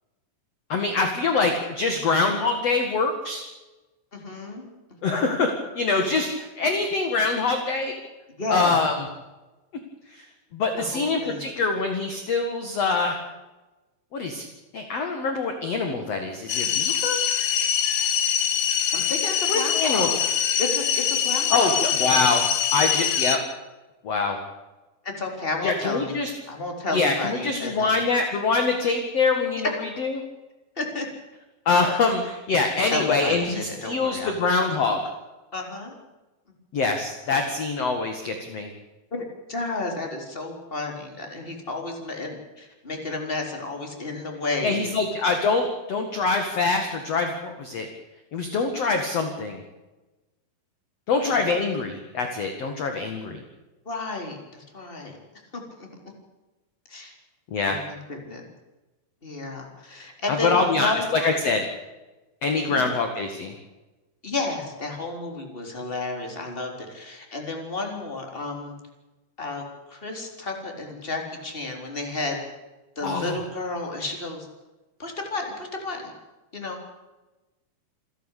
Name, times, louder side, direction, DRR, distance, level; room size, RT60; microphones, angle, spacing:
voice 1, 0.7-3.4 5.0-7.9 8.5-8.9 10.1-10.2 10.5-13.2 14.1-14.4 14.7-17.2 19.5-20.1 21.5-22.4 22.7-23.4 24.0-24.4 25.6-26.3 26.9-29.7 30.0-30.1 31.7-35.0 36.7-38.7 44.6-47.9 48.3-49.6 51.1-53.4 57.5-57.8 60.3-61.7 62.4-63.5 73.0-73.4, left 4 dB, 50° left, 5 dB, 2.6 m, -24 dB
voice 2, 4.1-4.7 5.0-5.2 6.0-6.1 8.4-8.8 10.7-11.4 18.9-20.2 20.6-21.7 25.0-26.1 26.5-28.0 29.6-29.7 30.8-31.1 32.9-34.3 35.5-35.9 39.1-45.0 51.5-51.6 53.9-55.2 55.5-55.9 56.9-57.1 57.6-58.4 59.2-61.4 62.5-62.9 64.2-68.7 69.4-69.6 69.9-72.4 73.0-74.5 75.0-76.1 76.5-76.9, left 2 dB, 15° left, 3 dB, 3.7 m, -32 dB
sound 1, 16.5-23.4, left 9 dB, 75° left, 3.3 m, -23 dB
28.0 x 11.5 x 8.4 m, 1.1 s
omnidirectional pair, 4.4 m